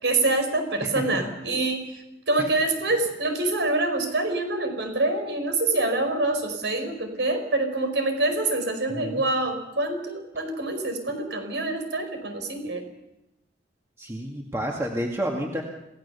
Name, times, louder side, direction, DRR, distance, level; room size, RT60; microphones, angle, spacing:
voice 1, 0.0-1.9 2.3-12.9, right 2 dB, 75° right, 6 dB, 4.8 m, -26 dB
voice 2, 0.8-1.2 8.9-9.2 14.0-15.6, equal, 15° right, 0 dB, 2.0 m, -30 dB
27.0 x 17.0 x 7.0 m, 0.90 s
head